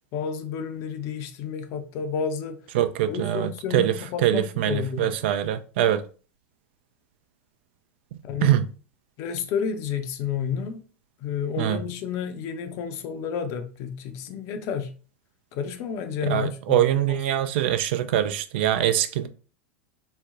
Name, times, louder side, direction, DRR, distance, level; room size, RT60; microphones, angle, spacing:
voice 1, 0.1-2.6 3.0-5.1 8.2-8.5 9.2-10.8 11.2-14.9 15.5-17.2, left 7 dB, 40° left, 0.5 m, -31 dB
voice 2, 2.7-6.0 8.4-8.7 11.6-11.8 16.2-19.3, right 11 dB, 55° right, 0.4 m, -23 dB
3.9 x 2.1 x 2.6 m
figure-of-eight pair, 85°, 7 cm